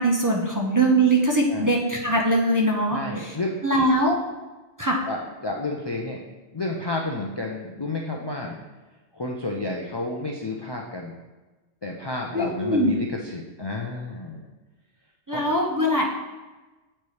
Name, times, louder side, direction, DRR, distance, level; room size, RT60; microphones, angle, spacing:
voice 1, 0.0-3.3 3.6-4.2 4.8-5.0 12.3-12.9 15.3-16.1, right 1 dB, 20° right, -2 dB, 0.5 m, -22 dB
voice 2, 2.9-3.6 5.1-6.2 6.5-8.6 9.1-11.2 11.8-14.5 15.3-15.4, left 2 dB, 45° left, 0 dB, 0.3 m, -31 dB
8.2 x 4.4 x 3.2 m, 1.2 s
omnidirectional pair, 1.2 m